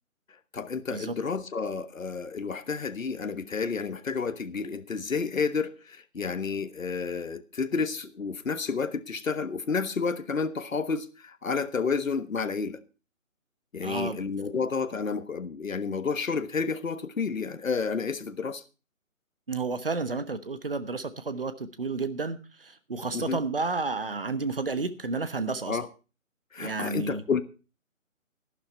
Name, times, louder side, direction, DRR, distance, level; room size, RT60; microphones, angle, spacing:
voice 1, 0.5-12.8 13.7-18.6 23.1-23.4 25.7-25.9 26.5-27.4, left 5 dB, 70° left, 1.3 m, -30 dB
voice 2, 13.8-14.2 19.5-25.8 26.6-27.2, right 3 dB, 40° right, 1.1 m, -31 dB
13.0 x 11.5 x 4.4 m
hypercardioid pair, 180°, 41 cm